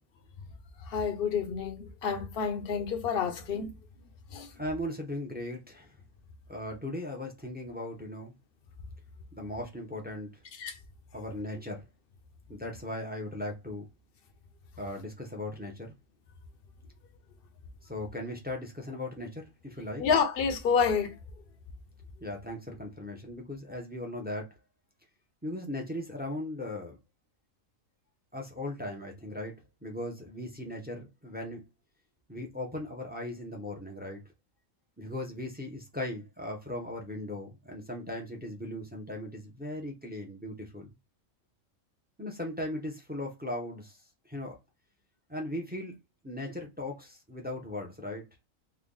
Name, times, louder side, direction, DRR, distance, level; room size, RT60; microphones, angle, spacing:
voice 1, 0.9-3.7 4.3-4.5 10.6-10.7 20.0-21.1, left 6 dB, 55° left, 0.7 m, -28 dB
voice 2, 4.5-6.0 6.5-8.3 9.3-10.3 11.1-11.8 12.5-13.8 14.8-15.9 17.8-20.0 22.2-24.5 25.4-27.0 28.3-29.5 29.8-31.6 32.3-34.2 35.0-40.9 42.2-44.0 44.2-44.6 45.3-45.9 46.2-48.4, left 1 dB, 10° right, 0.5 m, -38 dB
3.3 x 2.3 x 3.8 m
omnidirectional pair, 1.4 m